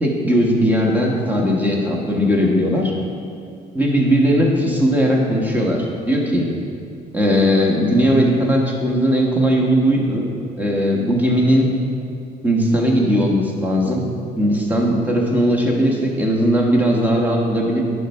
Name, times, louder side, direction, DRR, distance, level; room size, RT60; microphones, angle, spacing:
voice 1, 0.0-2.9 3.7-6.5 7.1-10.3 10.6-11.7 12.4-14.1 14.4-17.8, equal, 10° right, -2 dB, 1.3 m, -18 dB
10.0 x 3.4 x 5.4 m, 2.4 s
cardioid pair, 110°, 17 cm